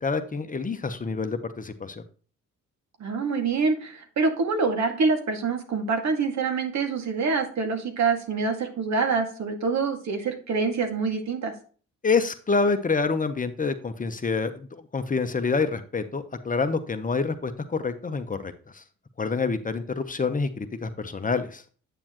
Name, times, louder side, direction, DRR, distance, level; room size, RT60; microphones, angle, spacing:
voice 1, 0.0-2.0 12.0-14.7 14.9-18.8 19.2-21.6, left 4 dB, 25° left, 9 dB, 1.0 m, -27 dB
voice 2, 3.0-11.5, right 4 dB, 65° right, 4 dB, 2.2 m, -26 dB
8.9 x 7.0 x 3.0 m, 0.40 s
cardioid pair, 90°, 30 cm